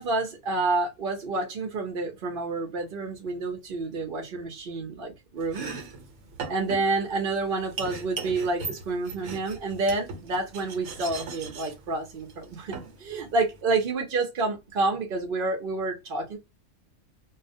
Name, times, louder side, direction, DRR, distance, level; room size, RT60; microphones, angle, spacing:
voice 1, 0.0-5.7 6.5-16.4, right 3 dB, 55° right, 0.7 m, -29 dB
Domestic sounds home sounds, 5.4-13.6, right 4 dB, 85° right, 1.0 m, -39 dB
2.4 x 2.1 x 2.5 m
omnidirectional pair, 1.4 m